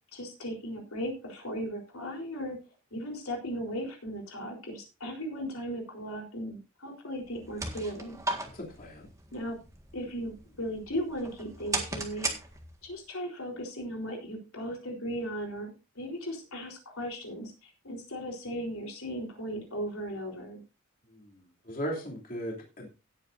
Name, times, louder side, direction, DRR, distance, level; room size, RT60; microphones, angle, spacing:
voice 1, 0.1-2.6 2.9-8.2 9.3-9.6 9.9-12.3 12.8-20.6, equal, 75° left, 1 dB, 4.0 m, -37 dB
sound 1, 7.2-13.0, right 2 dB, 15° right, 1.7 m, -37 dB
voice 2, 8.5-9.1 21.1-22.9, equal, 40° left, -2 dB, 2.9 m, -38 dB
17.5 x 8.6 x 2.7 m, 0.31 s
head